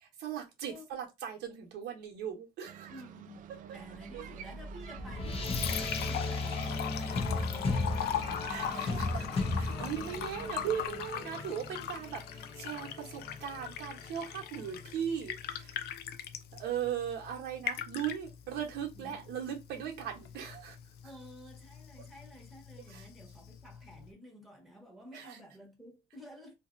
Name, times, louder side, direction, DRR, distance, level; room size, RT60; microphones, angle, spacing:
voice 1, 0.2-2.9 4.1-4.3 7.3-7.5 8.5-9.2 9.6-15.8 16.5-20.8 22.9-23.1 25.1-25.4, right 9 dB, 80° right, 0.9 m, -38 dB
sound 1, 2.7-10.9, right 10 dB, 55° right, 0.4 m, -49 dB
voice 2, 2.9-3.4 3.7-10.1 10.4-10.6 11.1-11.6 18.9-19.2 21.0-26.5, equal, ahead, 1.2 m, -52 dB
sound 2, 4.1-14.8, left 2 dB, 35° left, 0.8 m, -36 dB
Liquid, 5.1-24.1, left 9 dB, 70° left, 0.4 m, -41 dB
2.8 x 2.6 x 2.5 m
cardioid pair, 110°, 17 cm